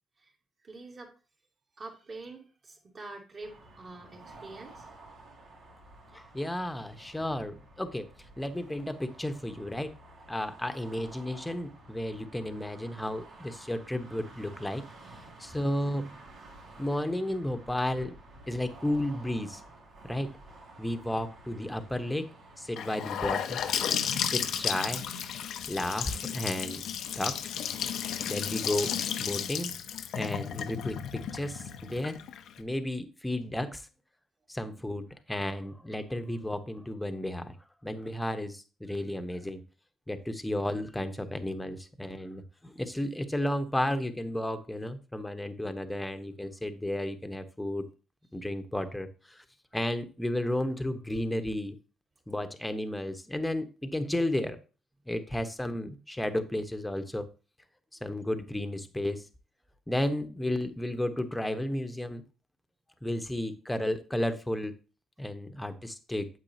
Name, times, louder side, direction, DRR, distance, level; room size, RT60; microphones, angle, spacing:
voice 1, 0.6-1.1 1.8-4.8 15.8-16.0, right 3 dB, 45° right, 0 dB, 2.9 m, -46 dB
sound 1, 3.4-23.0, right 2 dB, 80° right, 3.3 m, -52 dB
voice 2, 6.1-8.1 8.4-10.0 10.3-14.8 15.4-16.1 16.8-18.2 18.5-19.6 20.0-20.3 20.8-22.3 22.6-23.6 24.1-25.0 25.7-26.8 27.1-27.4 28.3-28.9 29.2-29.7 30.1-32.2 32.6-33.8 34.5-37.5 37.8-39.6 40.1-47.8 48.3-49.4 49.7-51.8 52.3-54.6 55.1-57.3 58.0-59.2 59.9-62.2 63.0-64.8 65.2-66.3, left 1 dB, 10° left, 8 dB, 1.0 m, -33 dB
Gurgling / Sink (filling or washing) / Bathtub (filling or washing), 22.8-32.6, left 8 dB, 80° left, 0.7 m, -33 dB
8.9 x 7.7 x 2.8 m, 0.34 s
cardioid pair, 90°, 0 cm